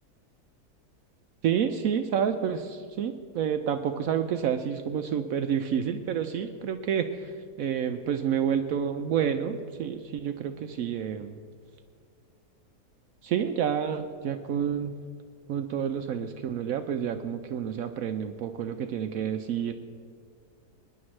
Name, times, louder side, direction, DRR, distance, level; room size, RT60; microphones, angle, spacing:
voice 1, 1.4-11.4 13.2-15.0 15.5-19.7, right 8 dB, 70° right, 7 dB, 0.9 m, -29 dB
23.5 x 10.5 x 3.2 m, 2.1 s
omnidirectional pair, 1.7 m